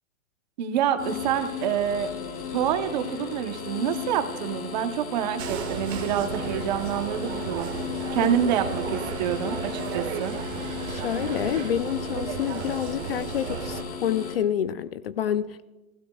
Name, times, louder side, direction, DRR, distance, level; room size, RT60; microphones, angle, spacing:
voice 1, 0.6-2.1 2.5-7.7 8.1-10.4, right 9 dB, 30° right, 9 dB, 0.8 m, -27 dB
sound 1, 1.0-14.3, left 7 dB, 90° left, 2.7 m, -36 dB
sound 2, 5.4-13.8, right 8 dB, 50° right, 1.6 m, -34 dB
sound 3, 6.1-11.7, right 6 dB, 70° right, 2.6 m, -46 dB
voice 2, 10.9-15.7, left 10 dB, 45° left, 14 dB, 0.4 m, -28 dB
22.5 x 15.5 x 2.3 m, 1.1 s
hypercardioid pair, 160°, 42 cm